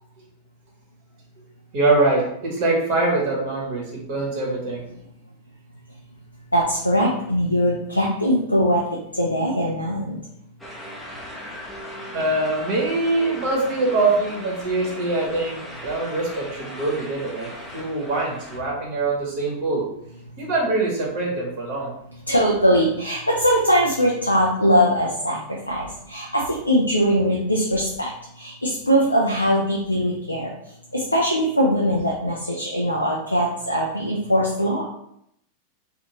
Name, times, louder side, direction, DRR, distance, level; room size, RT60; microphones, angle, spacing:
voice 1, 1.7-4.9 12.1-19.8 20.4-21.9, right 2 dB, 45° right, -3 dB, 0.9 m, -23 dB
voice 2, 6.5-10.2 22.3-30.5 30.9-34.8, equal, 85° left, -3 dB, 0.4 m, -21 dB
sound 1, 10.6-18.6, left 1 dB, 5° left, 0.6 m, -38 dB
2.5 x 2.4 x 2.9 m, 0.76 s
figure-of-eight pair, 90°, 0 cm